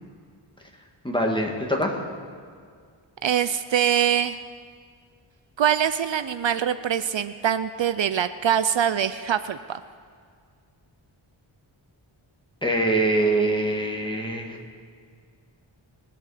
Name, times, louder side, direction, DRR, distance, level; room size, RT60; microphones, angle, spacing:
voice 1, 1.0-2.0 12.6-14.6, right 1 dB, 10° left, 1 dB, 2.0 m, -24 dB
voice 2, 3.2-4.4 5.6-9.8, right 9 dB, 65° right, 12 dB, 0.5 m, -23 dB
21.5 x 8.7 x 5.0 m, 2.1 s
wide cardioid pair, 65°, 48 cm